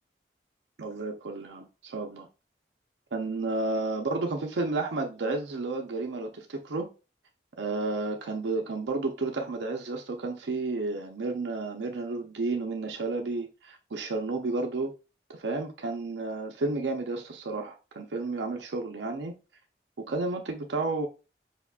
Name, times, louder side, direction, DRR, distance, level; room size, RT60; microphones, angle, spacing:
voice 1, 0.8-2.3 3.1-6.9 7.6-14.9 15.3-19.4 20.0-21.1, right 3 dB, 85° right, 0.6 m, -31 dB
4.8 x 3.6 x 2.3 m
head